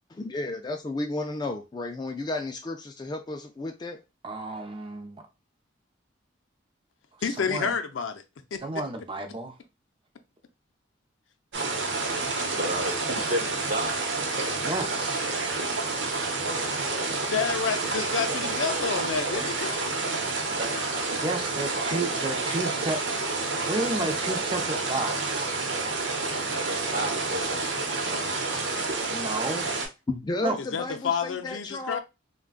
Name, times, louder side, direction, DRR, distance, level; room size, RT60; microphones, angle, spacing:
voice 1, 0.1-4.0 30.1-32.0, left 2 dB, 20° left, 0.3 m, -33 dB
voice 2, 4.2-5.2 7.5-7.7 8.6-9.5 14.6-15.2 21.2-23.2 23.7-25.5 29.1-29.6 30.4-30.6, right 2 dB, 25° right, 0.6 m, -31 dB
voice 3, 7.2-8.2 8.5-8.6 17.2-19.9 30.6-32.0, left 6 dB, 85° left, 0.5 m, -29 dB
sound 1, 11.5-29.9, right 3 dB, 65° right, 0.8 m, -29 dB
voice 4, 12.5-14.7 18.7-19.2 20.6-21.4 21.7-21.9 26.6-28.5, right 1 dB, 45° right, 1.1 m, -34 dB
3.7 x 2.2 x 2.4 m
head